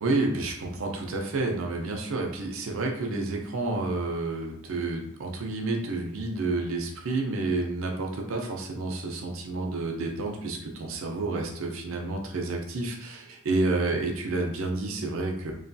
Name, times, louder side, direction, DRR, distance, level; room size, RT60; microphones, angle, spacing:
voice 1, 0.0-15.5, right 2 dB, 80° right, 1 dB, 0.5 m, -30 dB
3.1 x 2.2 x 2.6 m, 0.79 s
head